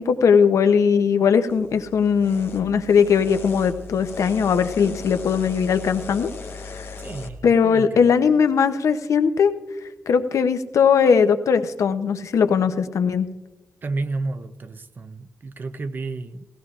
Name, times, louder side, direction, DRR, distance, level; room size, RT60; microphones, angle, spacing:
voice 1, 0.0-6.3 6.6-6.9 7.4-9.5 10.1-13.3, left 6 dB, 90° left, 0.7 m, -19 dB
sound 1, 1.5-7.3, left 4 dB, 50° left, 1.1 m, -38 dB
voice 2, 7.0-8.0 13.8-16.5, right 3 dB, 40° right, 0.5 m, -31 dB
19.0 x 16.5 x 2.4 m
wide cardioid pair, 175°, 5 cm